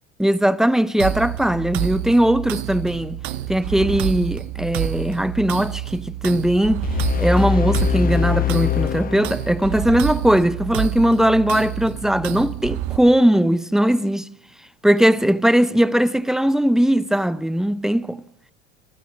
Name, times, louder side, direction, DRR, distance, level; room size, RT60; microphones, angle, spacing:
voice 1, 0.2-3.2 3.5-6.8 7.2-14.3 14.8-18.2, equal, ahead, 0.7 m, -19 dB
sound 1, 1.0-13.0, right 14 dB, 55° right, 1.3 m, -28 dB
sound 2, 6.8-9.9, left 7 dB, 25° left, 1.1 m, -23 dB
29.0 x 12.5 x 7.3 m
hypercardioid pair, 85°, 34 cm